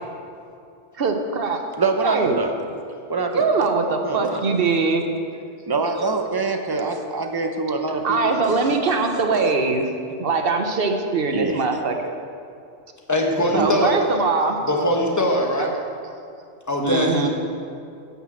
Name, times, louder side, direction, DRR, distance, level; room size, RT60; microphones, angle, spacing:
voice 1, 1.0-1.6 2.0-2.4 3.3-5.1 8.0-9.9 10.2-12.1 13.5-14.6 15.6-15.7 16.8-17.3, right 4 dB, 55° right, 5 dB, 0.9 m, -22 dB
voice 2, 1.8-2.5 3.1-3.5 4.0-4.5 5.7-8.6 8.9-9.5 11.3-11.6 13.6-13.8, right 3 dB, 25° right, 4 dB, 0.6 m, -25 dB
voice 3, 13.1-13.9 14.6-15.7 16.7-17.3, left 1 dB, 15° left, 0 dB, 1.1 m, -21 dB
10.0 x 5.7 x 7.3 m, 2.4 s
omnidirectional pair, 1.2 m